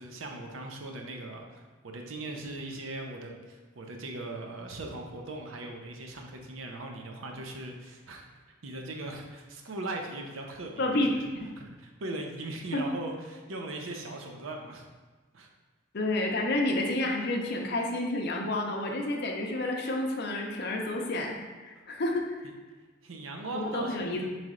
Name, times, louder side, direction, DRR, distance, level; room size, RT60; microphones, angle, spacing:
voice 1, 0.0-8.3 8.6-11.2 11.6-14.9 15.3-15.5 23.0-24.3, right 2 dB, 80° right, 2 dB, 0.6 m, -39 dB
voice 2, 10.8-11.1 11.3-11.5 12.7-12.9 15.9-21.4 21.6-22.5 23.5-24.2, left 2 dB, 55° left, 1 dB, 0.6 m, -30 dB
4.1 x 3.2 x 3.7 m, 1.3 s
head